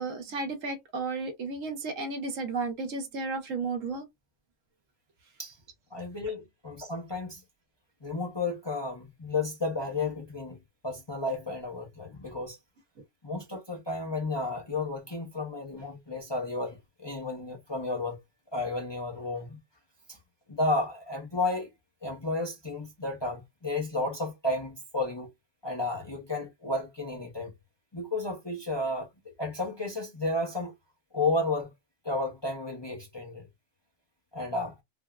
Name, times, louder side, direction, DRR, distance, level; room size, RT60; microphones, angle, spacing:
voice 1, 0.0-4.1, right 3 dB, 75° right, 1.2 m, -33 dB
voice 2, 5.9-7.4 8.0-10.6 10.8-12.6 13.2-18.2 18.5-19.6 20.1-20.2 20.5-21.7 22.0-25.3 25.6-27.5 27.9-30.7 31.1-31.7 32.0-33.5 34.3-34.7, left 2 dB, 25° left, 0.6 m, -32 dB
3.4 x 2.1 x 2.3 m
omnidirectional pair, 1.4 m